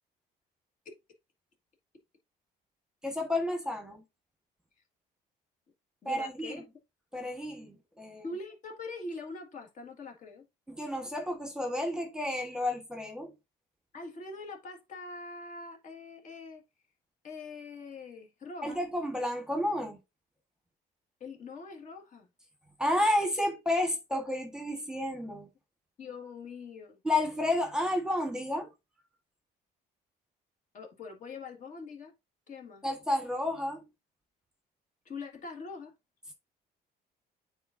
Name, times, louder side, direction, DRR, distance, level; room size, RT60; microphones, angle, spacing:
voice 1, 3.0-4.0 6.0-6.6 7.1-8.2 10.7-13.3 18.6-20.0 22.8-25.5 27.0-28.7 32.8-33.8, left 1 dB, 5° right, 1.3 m, -31 dB
voice 2, 6.0-6.7 8.2-10.4 13.9-16.6 17.2-18.8 21.2-22.3 26.0-27.0 30.7-32.1 32.5-32.9 35.1-35.9, left 3 dB, 50° left, 1.8 m, -43 dB
9.2 x 4.0 x 2.6 m
cardioid pair, 110°, 17 cm